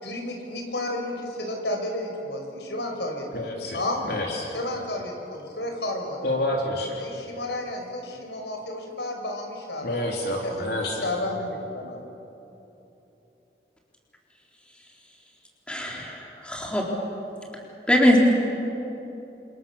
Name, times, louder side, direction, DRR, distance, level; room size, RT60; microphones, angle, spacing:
voice 1, 0.0-4.0 4.5-6.4 7.0-12.0, left 1 dB, 80° left, 2 dB, 5.5 m, -32 dB
voice 2, 3.3-4.5 6.2-7.0 9.8-11.0, left 1 dB, 65° left, -1 dB, 3.4 m, -28 dB
voice 3, 15.7-16.8 17.9-18.2, left 1 dB, 5° left, -2 dB, 3.9 m, -22 dB
30.0 x 27.0 x 7.2 m, 3.0 s
head